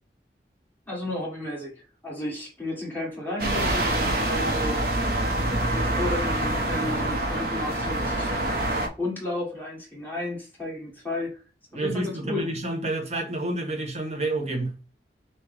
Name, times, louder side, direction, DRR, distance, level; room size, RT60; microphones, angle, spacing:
voice 1, 0.9-4.8 5.7-8.3 9.0-11.4 11.7-12.5, left 2 dB, 10° left, 1.5 m, -33 dB
sound 1, 3.4-8.9, right 1 dB, 55° right, 0.8 m, -26 dB
voice 2, 11.7-14.7, right 2 dB, 40° right, 1.1 m, -29 dB
6.1 x 2.2 x 3.4 m
head